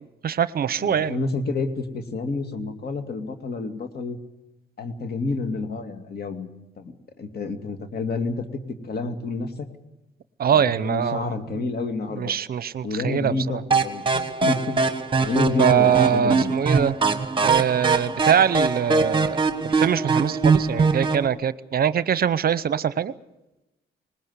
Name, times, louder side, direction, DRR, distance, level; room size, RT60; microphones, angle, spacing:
voice 1, 0.0-1.2 10.4-11.6 12.1-13.6 15.6-17.0 17.4-19.4 19.6-23.1, right 8 dB, 50° right, 17 dB, 0.8 m, -23 dB
voice 2, 0.8-4.2 4.8-6.5 6.8-8.4 8.8-9.7 10.5-12.4 12.8-14.8 15.2-16.5, left 3 dB, 50° left, 6 dB, 2.5 m, -29 dB
sound 1, 13.7-21.3, right 4 dB, 25° right, 1.5 m, -22 dB
20.0 x 20.0 x 8.2 m, 0.97 s
cardioid pair, 90°, 20 cm